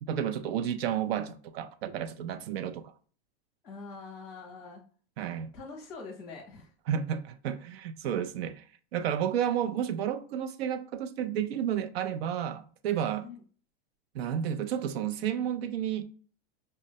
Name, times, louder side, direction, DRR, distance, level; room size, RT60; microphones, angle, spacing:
voice 1, 0.0-2.9 5.2-5.5 6.9-8.6 8.9-13.3 14.1-16.0, right 9 dB, 85° right, 0.5 m, -31 dB
voice 2, 3.6-4.8 5.5-6.7 13.2-13.3, left 4 dB, 10° left, 0.6 m, -44 dB
5.3 x 2.1 x 2.6 m
supercardioid pair, 170°, 30 cm